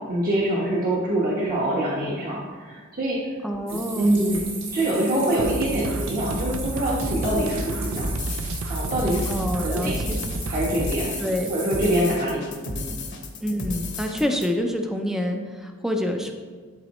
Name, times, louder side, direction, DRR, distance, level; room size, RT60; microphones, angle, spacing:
voice 1, 0.1-3.2 3.7-4.4 4.7-8.1 8.7-9.2 9.6-10.0 10.5-11.2 11.5-12.9, right 1 dB, 45° right, -6 dB, 1.2 m, -24 dB
voice 2, 3.4-4.1 9.3-10.2 11.2-11.5 13.4-16.3, left 1 dB, ahead, 3 dB, 0.5 m, -27 dB
sound 1, 3.7-12.0, right 4 dB, 65° right, 1.5 m, -37 dB
sound 2, 5.4-10.9, right 2 dB, 85° right, 0.5 m, -31 dB
sound 3, 7.0-14.5, left 2 dB, 60° left, 1.0 m, -34 dB
11.5 x 3.9 x 3.0 m, 1.5 s
head